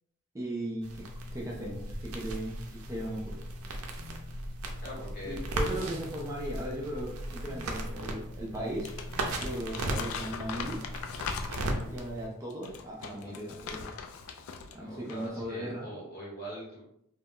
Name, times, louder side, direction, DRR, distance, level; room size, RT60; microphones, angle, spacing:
voice 1, 0.3-1.1 1.3-3.4 5.2-8.9 9.4-10.8 11.1-11.2 11.9-13.9 14.7-15.9, right 1 dB, 15° right, -3 dB, 0.4 m, -37 dB
sound 1, 0.8-12.3, right 1 dB, 75° right, 0.5 m, -37 dB
sound 2, 3.9-4.2 5.7-6.0 7.4-7.7 9.1-9.4, left 2 dB, 15° left, 0.8 m, -49 dB
voice 2, 4.8-5.4 13.0-13.4 14.8-16.8, equal, 45° left, -4 dB, 1.0 m, -42 dB
Crumpling crinkling, 8.7-11.9 12.5-14.8 15.1-15.3, left 5 dB, 65° left, 0.3 m, -40 dB
2.2 x 2.0 x 3.6 m, 0.76 s
head